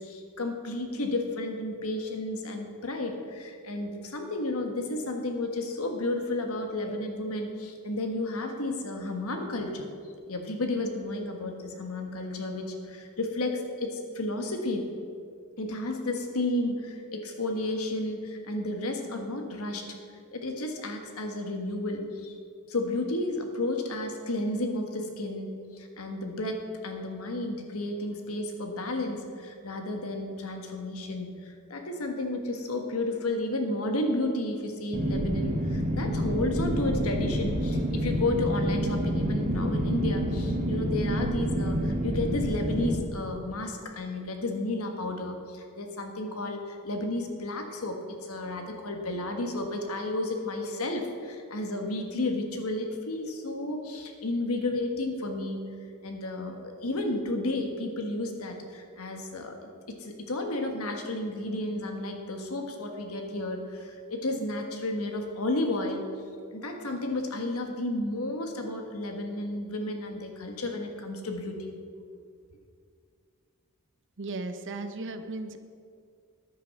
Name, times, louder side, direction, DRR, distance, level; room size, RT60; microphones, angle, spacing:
voice 1, 0.0-9.9 10.3-14.9 15.6-20.0 20.3-22.3 22.7-55.6 56.0-59.7 60.0-66.1 66.5-71.7 72.1-72.2, left 2 dB, 70° left, 4 dB, 1.4 m, -32 dB
sound 1, 34.9-42.9, equal, 35° right, 1.3 m, -28 dB
voice 2, 74.2-75.6, right 2 dB, 55° right, 8 dB, 0.8 m, -36 dB
10.5 x 8.6 x 5.8 m, 2.2 s
head